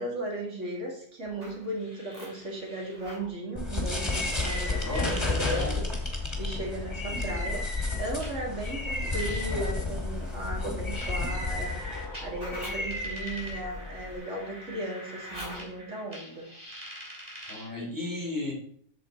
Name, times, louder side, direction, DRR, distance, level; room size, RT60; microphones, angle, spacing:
voice 1, 0.0-5.9 6.4-11.8 12.2-16.5, right 1 dB, 80° right, -1 dB, 2.4 m, -36 dB
sound 1, 1.3-3.3 4.4-5.7 6.8-6.9 8.2-17.8, equal, 30° right, 3.5 m, -45 dB
sound 2, 3.5-14.2, left 2 dB, 20° left, 2.0 m, -31 dB
voice 2, 4.8-5.8 17.5-18.5, left 2 dB, 15° right, -3 dB, 3.5 m, -34 dB
7.9 x 7.3 x 4.3 m, 0.62 s
omnidirectional pair, 1.2 m